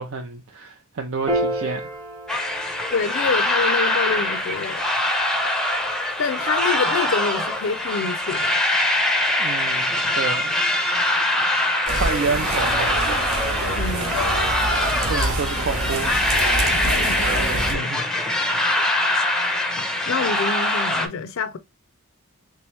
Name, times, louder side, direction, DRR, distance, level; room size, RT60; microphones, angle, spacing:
voice 1, 0.0-1.9 9.4-10.6 11.7-13.0 15.1-16.2 17.5-18.0, right 4 dB, 65° right, 0.5 m, -29 dB
Piano, 1.3-7.9, right 1 dB, 20° right, 0.9 m, -33 dB
sound 1, 2.3-21.1, left 1 dB, 5° left, 0.5 m, -23 dB
voice 2, 2.9-4.8 6.2-8.6 13.7-14.3 16.7-17.3 17.7-18.3 19.7-21.6, left 5 dB, 65° left, 0.4 m, -27 dB
sound 2, 11.9-17.7, right 2 dB, 80° right, 1.0 m, -26 dB
3.5 x 3.0 x 3.0 m
head